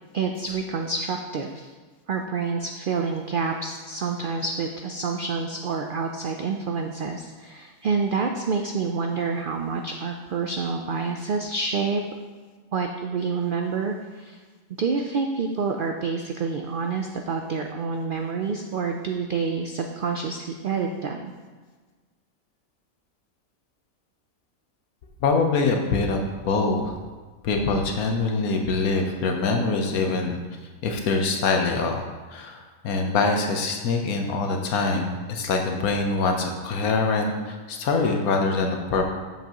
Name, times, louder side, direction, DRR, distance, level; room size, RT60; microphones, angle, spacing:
voice 1, 0.1-1.7 2.1-12.0 12.7-14.4 14.8-21.3, right 4 dB, 85° right, 3 dB, 0.4 m, -28 dB
voice 2, 25.2-26.9 27.4-30.4 30.8-32.0 32.3-39.1, left 3 dB, 85° left, 3 dB, 1.3 m, -24 dB
8.1 x 7.2 x 2.9 m, 1.4 s
omnidirectional pair, 1.5 m